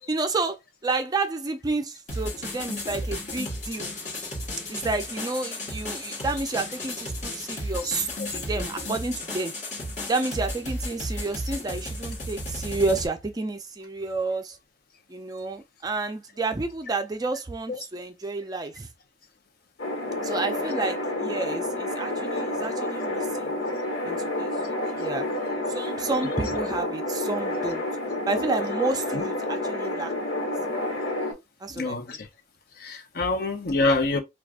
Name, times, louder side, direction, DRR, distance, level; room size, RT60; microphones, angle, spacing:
voice 1, 0.1-0.6 0.8-3.9 4.7-9.5 10.1-14.6 15.1-18.9 20.2-23.5 24.0-24.5 24.9-25.3 25.7-27.8 28.3-30.1 31.6-32.0, right 3 dB, 20° right, 0.4 m, -30 dB
sound 1, 2.1-13.1, left 1 dB, 40° left, 1.5 m, -34 dB
sound 2, 19.8-31.3, left 1 dB, 75° left, 1.3 m, -29 dB
voice 2, 31.7-32.3 32.8-34.2, left 2 dB, 60° left, 0.7 m, -25 dB
4.7 x 2.4 x 2.4 m
head